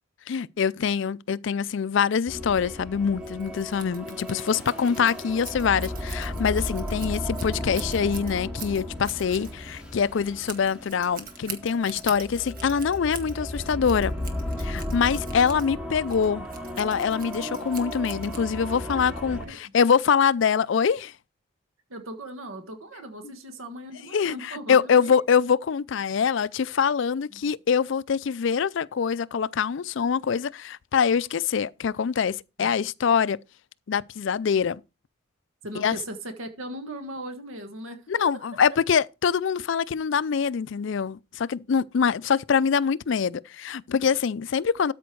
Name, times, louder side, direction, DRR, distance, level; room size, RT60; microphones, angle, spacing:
voice 1, 0.3-14.1 14.6-16.5 16.8-21.1 24.1-24.4 24.7-33.4 33.9-34.8 35.8-36.0 38.1-44.9, left 6 dB, 60° left, 0.4 m, -24 dB
sound 1, 2.3-19.5, left 1 dB, 5° right, 2.3 m, -35 dB
Scissors, 3.2-18.8, right 7 dB, 45° right, 1.4 m, -44 dB
voice 2, 18.7-19.2 19.4-19.6 21.9-25.2 27.3-27.5 32.6-32.7 35.6-38.1 38.3-38.5, right 1 dB, 80° right, 1.5 m, -39 dB
13.0 x 5.1 x 4.6 m
head